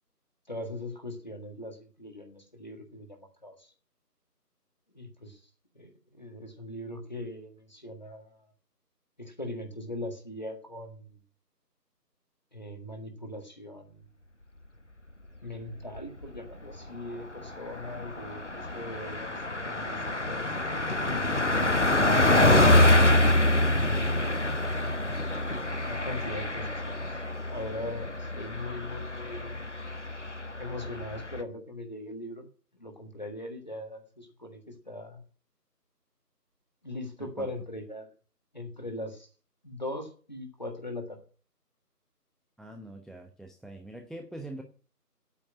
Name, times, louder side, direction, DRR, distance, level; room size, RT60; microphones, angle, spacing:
voice 1, 0.5-3.7 4.9-5.4 5.7-8.5 9.2-11.2 12.5-14.0 15.4-20.5 22.1-24.5 25.8-27.2 27.5-29.6 30.6-32.4 32.8-35.2 36.8-38.1 38.5-39.3 39.6-41.2, left 1 dB, 25° left, 4 dB, 1.6 m, -40 dB
Car passing by, 15.7-16.4 16.7-16.9 17.1-31.4, left 1 dB, 45° left, 1.0 m, -26 dB
voice 2, 42.6-44.6, right 1 dB, ahead, 4 dB, 0.6 m, -43 dB
8.7 x 8.2 x 9.2 m, 0.40 s
figure-of-eight pair, 170°, 49 cm